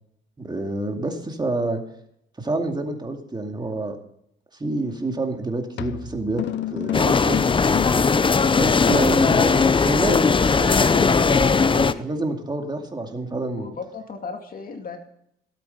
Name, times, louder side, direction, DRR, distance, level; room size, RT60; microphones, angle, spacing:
voice 1, 0.4-1.8 2.4-4.0 4.5-6.4 6.7-7.4 8.5-13.7, right 2 dB, 20° right, 3 dB, 2.3 m, -28 dB
sound 1, 4.9-5.1 5.8-8.2, left 12 dB, 65° left, 0.7 m, -30 dB
sound 2, 6.9-11.9, left 5 dB, 25° left, 0.7 m, -18 dB
voice 2, 13.4-15.0, left 5 dB, 45° left, 4 dB, 2.3 m, -35 dB
17.0 x 8.6 x 5.5 m, 0.74 s
cardioid pair, 90°, 20 cm